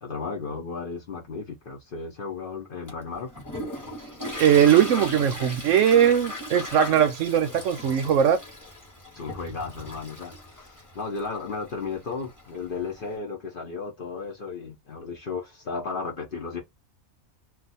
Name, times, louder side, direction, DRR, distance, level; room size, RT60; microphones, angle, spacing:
voice 1, 0.0-3.3 9.1-16.6, left 4 dB, 45° left, 0.8 m, -34 dB
Toilet flush, 2.9-13.1, left 1 dB, 15° left, 0.9 m, -38 dB
voice 2, 4.4-8.4, right 9 dB, 70° right, 0.9 m, -20 dB
2.4 x 2.4 x 4.0 m
omnidirectional pair, 1.5 m